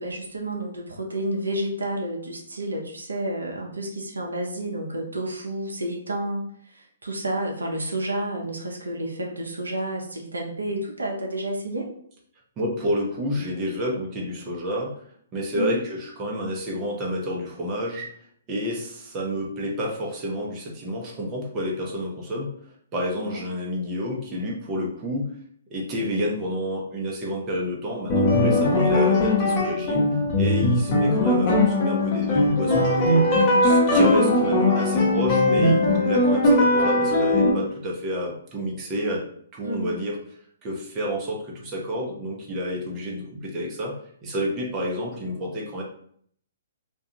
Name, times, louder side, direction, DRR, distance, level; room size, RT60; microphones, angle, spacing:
voice 1, 0.0-11.9 15.5-15.8 23.2-23.4 28.6-28.8 33.9-34.2 39.6-40.0, right 1 dB, 85° right, 0 dB, 0.5 m, -30 dB
voice 2, 12.6-14.9 15.3-18.1 18.5-25.3 25.7-30.1 30.4-33.2 33.6-39.2 39.5-40.2 40.6-43.9 44.2-45.8, equal, 25° right, -2 dB, 0.7 m, -29 dB
sound 1, 28.1-37.5, left 1 dB, 35° left, 0.8 m, -20 dB
2.4 x 2.3 x 2.8 m, 0.62 s
figure-of-eight pair, 130°, 0 cm